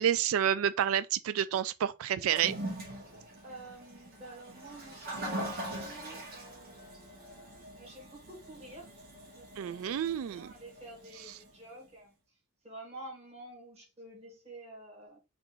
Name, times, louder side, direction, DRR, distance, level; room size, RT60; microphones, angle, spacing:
voice 1, 0.0-2.5 9.6-10.5, right 9 dB, 75° right, 0.3 m, -29 dB
Toilet flush, 2.2-11.5, right 1 dB, 50° right, 2.1 m, -42 dB
voice 2, 3.4-8.9 9.4-10.0 10.3-12.1 12.6-15.3, right 1 dB, 30° right, 2.0 m, -50 dB
4.4 x 2.7 x 4.0 m
head